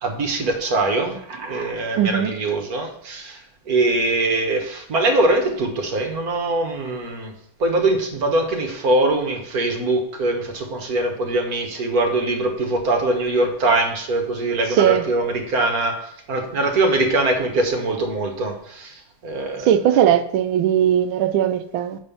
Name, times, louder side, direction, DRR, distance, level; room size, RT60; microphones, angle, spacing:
voice 1, 0.0-3.4 3.7-7.3 7.6-20.0, right 2 dB, 55° right, 1.6 m, -22 dB
voice 2, 2.0-2.3 14.8-15.0 19.6-22.0, right 10 dB, 85° right, 1.4 m, -18 dB
6.2 x 5.4 x 6.9 m
omnidirectional pair, 2.1 m